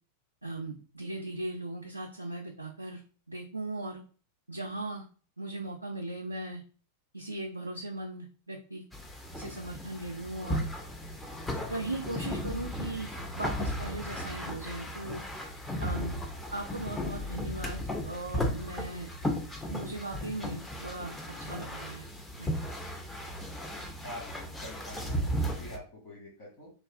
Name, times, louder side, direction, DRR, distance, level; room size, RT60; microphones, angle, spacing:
voice 1, 0.4-3.0 3.3-4.0 4.5-5.1 5.4-6.6 7.1-8.8 9.3-10.7 11.7-15.2 15.8-16.2 16.5-19.1 19.7-22.1 22.4-22.8, right 2 dB, 85° right, 1 dB, 0.3 m, -38 dB
sound 1, 8.9-25.8, equal, 10° left, 0.5 m, -36 dB
voice 2, 24.6-26.7, equal, 40° left, -6 dB, 1.4 m, -45 dB
3.5 x 2.3 x 2.2 m, 0.39 s
figure-of-eight pair, 90°, 0 cm